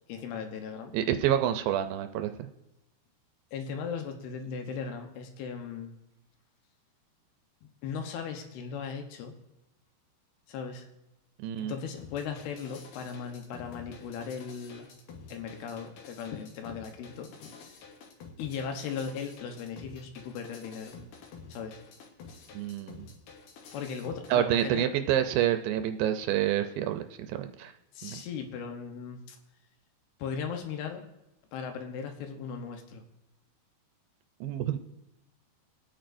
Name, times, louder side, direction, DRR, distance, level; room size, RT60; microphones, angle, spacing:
voice 1, 0.1-1.0 3.5-5.9 7.6-9.4 10.5-10.9 11.6-14.9 15.3-17.5 18.4-20.9 21.5-21.8 23.7-24.9 27.9-29.4 30.2-31.0 31.5-33.0, left 6 dB, 85° left, 5 dB, 3.0 m, -37 dB
voice 2, 0.9-2.5 11.4-11.7 22.5-23.1 24.3-27.7 28.0-28.2 34.4-34.8, right 11 dB, 80° right, 8 dB, 2.2 m, -28 dB
sound 1, 12.0-24.3, left 5 dB, 65° left, 2.4 m, -49 dB
24.5 x 9.0 x 2.6 m, 0.94 s
omnidirectional pair, 4.5 m